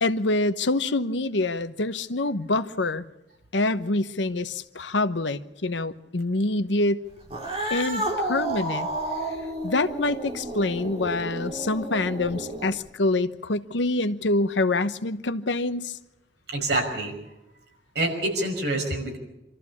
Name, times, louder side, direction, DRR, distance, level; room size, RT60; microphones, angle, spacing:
voice 1, 0.0-3.0 3.5-7.0 7.7-8.9 9.6-15.9, left 2 dB, 90° left, 11 dB, 1.0 m, -26 dB
Cat, 7.2-12.9, right 1 dB, 30° right, 3.3 m, -31 dB
voice 2, 16.5-17.1 17.9-19.2, right 2 dB, 70° right, 2 dB, 5.8 m, -26 dB
25.5 x 14.0 x 8.5 m, 0.93 s
head